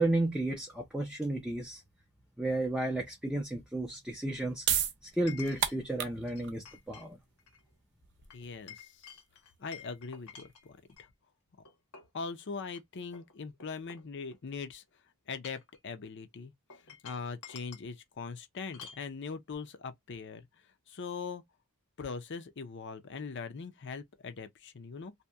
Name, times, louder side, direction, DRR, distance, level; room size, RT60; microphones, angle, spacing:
voice 1, 0.0-1.8 2.4-4.7 5.0-7.2, right 2 dB, 5° right, 0.5 m, -32 dB
Chink clink, 1.8-1.9 5.3-5.8 6.3-7.1 7.4-7.6 8.3-11.1 11.7-12.2 12.7-12.8 13.1-14.6 15.3-15.8 16.7-17.9 18.7-19.1, left 7 dB, 80° left, 1.1 m, -50 dB
sound 1, 4.2-10.9, right 9 dB, 55° right, 0.5 m, -36 dB
voice 2, 8.3-9.0 9.6-11.1 12.1-14.8 15.3-16.5 16.9-20.5 20.9-21.4 22.0-25.1, left 5 dB, 55° left, 0.5 m, -41 dB
2.8 x 2.2 x 2.3 m
head